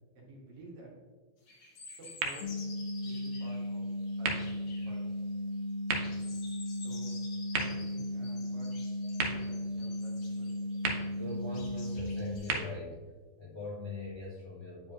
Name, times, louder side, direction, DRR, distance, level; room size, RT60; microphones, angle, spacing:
voice 1, 0.1-0.9 2.0-2.5 3.0-3.9 4.2-5.1 6.8-7.2 7.5-8.7 9.1-10.7, right 2 dB, 55° right, -4 dB, 2.5 m, -51 dB
sound 1, 1.5-5.1 5.3-5.6 5.9-12.6, left 3 dB, 60° left, 1.0 m, -52 dB
sound 2, 2.1-14.1, right 5 dB, 80° right, 2.2 m, -41 dB
sound 3, 2.4-12.4, left 1 dB, 85° left, 1.4 m, -36 dB
voice 2, 11.0-13.1 13.4-14.9, left 2 dB, 30° left, -6 dB, 0.4 m, -42 dB
9.5 x 4.7 x 2.9 m, 1.3 s
omnidirectional pair, 3.4 m